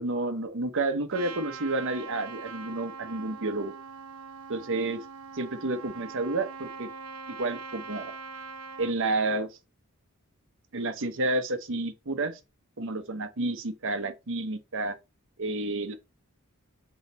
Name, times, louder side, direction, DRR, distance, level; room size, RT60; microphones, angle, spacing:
voice 1, 0.0-3.7 4.5-5.0 5.3-6.9 7.3-8.1 8.8-9.6 10.7-12.4 12.8-14.9 15.4-15.9, right 2 dB, 65° right, 1.0 m, -30 dB
Trumpet, 1.1-8.9, right 5 dB, 90° right, 0.7 m, -42 dB
6.4 x 4.7 x 4.1 m
head